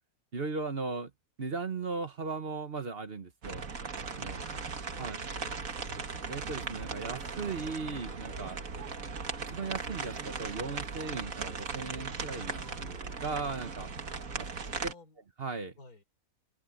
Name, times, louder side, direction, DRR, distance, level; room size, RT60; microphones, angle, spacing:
voice 1, 0.3-1.1 1.4-3.6 4.2-4.4 5.0-5.2 6.3-8.6 9.5-13.9 14.4-14.5 14.8-14.9 15.4-15.7, right 4 dB, 45° right, 1.3 m, -37 dB
sound 1, 3.4-14.9, right 4 dB, 65° right, 2.2 m, -38 dB
voice 2, 4.2-6.1 14.8-15.2 15.8-16.0, left 3 dB, 85° left, 4.3 m, -55 dB
open air
omnidirectional pair, 1.5 m